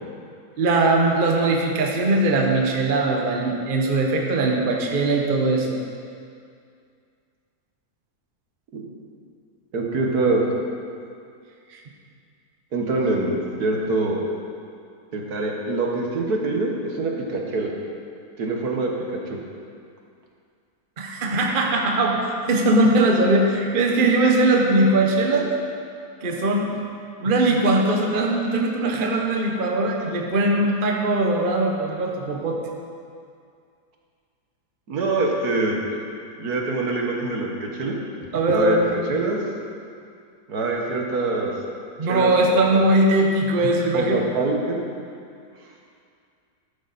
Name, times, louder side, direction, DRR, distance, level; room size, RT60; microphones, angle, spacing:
voice 1, 0.6-5.8 11.7-11.8 21.0-25.5 26.2-26.7 27.2-32.6 38.3-38.9 42.0-44.2, right 2 dB, 35° right, 1 dB, 1.1 m, -20 dB
voice 2, 9.7-10.4 12.7-14.2 15.1-17.7 18.4-19.4 34.9-35.8 36.4-38.0 38.5-38.8 39.1-39.4 40.5-41.5 42.1-42.6 43.9-44.8, right 3 dB, 70° right, 0 dB, 1.8 m, -24 dB
13.0 x 10.5 x 4.1 m, 2.3 s
omnidirectional pair, 1.7 m